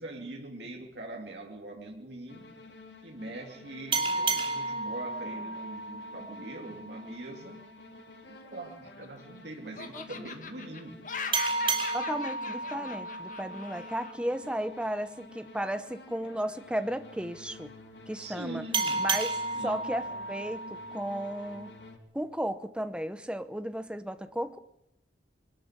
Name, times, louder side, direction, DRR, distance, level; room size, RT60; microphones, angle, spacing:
voice 1, 0.0-2.5 3.0-7.6 8.3-11.0 18.2-19.1 19.6-19.8, right 2 dB, 75° right, 0 dB, 2.8 m, -42 dB
sound 1, 2.3-22.0, left 2 dB, 90° left, 3.5 m, -50 dB
sound 2, 3.9-7.1 11.3-14.6 18.7-21.7, right 3 dB, 30° right, 3.2 m, -33 dB
Laughter, 8.5-9.4 9.8-14.1, left 5 dB, 50° left, 2.1 m, -41 dB
voice 2, 11.9-17.7 18.1-18.7 19.0-19.4 19.6-21.7 22.1-24.6, right 1 dB, 5° right, 10 dB, 0.8 m, -34 dB
22.5 x 13.0 x 9.8 m, 0.80 s
head